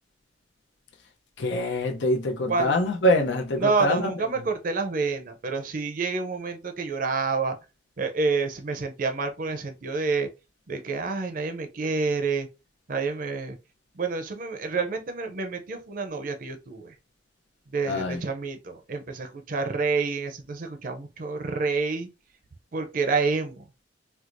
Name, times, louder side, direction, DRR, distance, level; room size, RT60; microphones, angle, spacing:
voice 1, 1.4-4.1 17.9-18.2, left 1 dB, 85° left, 0.6 m, -24 dB
voice 2, 3.6-7.6 8.0-10.3 10.7-12.5 12.9-13.6 13.9-16.9 17.7-22.1 22.7-23.6, right 4 dB, 50° right, 0.5 m, -28 dB
4.5 x 2.0 x 2.5 m
head